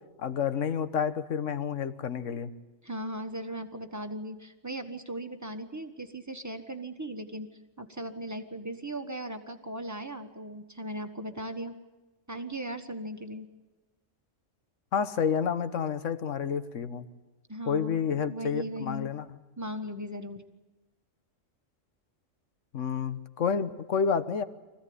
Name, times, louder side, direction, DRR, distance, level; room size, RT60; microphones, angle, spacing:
voice 1, 0.2-2.5 14.9-17.0 17.7-19.3 22.7-24.4, left 7 dB, 70° left, 12 dB, 1.4 m, -29 dB
voice 2, 2.8-7.5 7.8-11.7 12.3-13.5 17.5-19.1 19.6-20.4, right 1 dB, 15° right, 7 dB, 1.3 m, -38 dB
24.5 x 16.0 x 9.6 m, 1.1 s
omnidirectional pair, 1.3 m